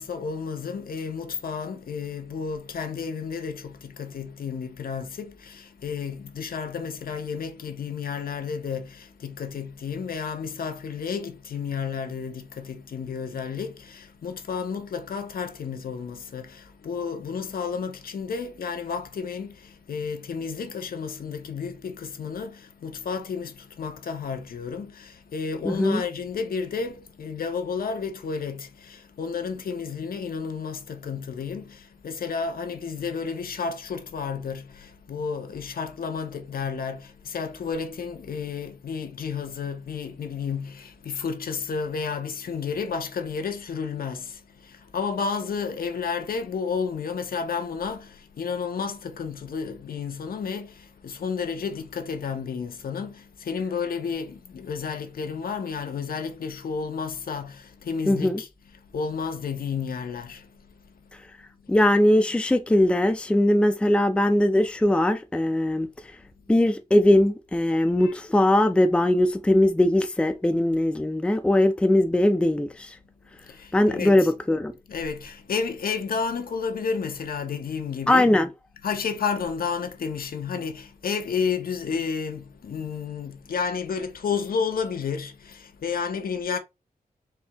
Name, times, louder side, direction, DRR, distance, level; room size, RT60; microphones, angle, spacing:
voice 1, 0.0-61.2 61.6-61.8 68.0-68.2 73.4-74.3 74.9-78.3 78.8-86.6, left 6 dB, 70° left, 0.8 m, -31 dB
voice 2, 25.6-26.0 58.1-58.4 61.7-65.9 66.5-72.9 73.7-74.7 78.1-78.5, left 1 dB, 5° left, 0.4 m, -20 dB
4.3 x 2.8 x 3.4 m
wide cardioid pair, 155°, 15 cm